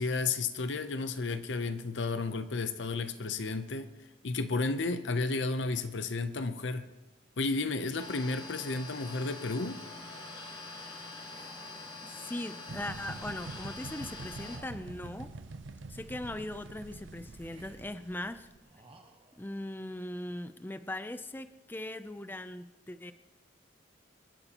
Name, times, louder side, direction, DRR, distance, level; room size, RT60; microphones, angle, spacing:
voice 1, 0.0-3.9 4.2-6.9 7.4-9.8, left 3 dB, 75° left, 11 dB, 0.7 m, -32 dB
sound 1, 8.0-14.6, left 3 dB, 30° left, 3.3 m, -45 dB
sound 2, 11.2-12.0 12.7-13.8 14.3-15.6 16.1-16.9 17.4-18.1 18.6-19.6, right 2 dB, 30° right, 1.3 m, -60 dB
voice 2, 12.0-15.3 15.9-18.5 19.4-23.1, left 1 dB, 10° left, 11 dB, 0.5 m, -40 dB
sound 3, 12.7-18.6, right 3 dB, 80° right, 0.7 m, -46 dB
27.0 x 11.0 x 2.9 m, 1.0 s
head